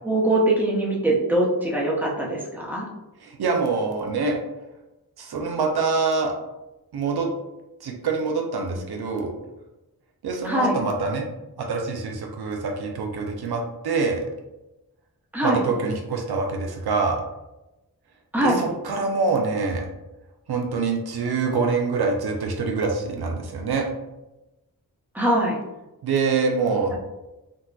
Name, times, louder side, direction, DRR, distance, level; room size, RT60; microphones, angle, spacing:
voice 1, 0.0-2.9 10.4-10.8 15.3-15.6 18.3-18.6 25.1-25.6, right 1 dB, 5° right, -4 dB, 0.8 m, -22 dB
voice 2, 3.2-4.4 5.2-6.3 6.9-7.3 7.8-9.3 10.2-11.3 11.6-14.2 15.4-17.2 18.4-19.9 20.5-23.8 26.0-26.9, right 4 dB, 80° right, 2 dB, 0.5 m, -25 dB
3.9 x 2.2 x 2.2 m, 0.99 s
cardioid pair, 55°, 38 cm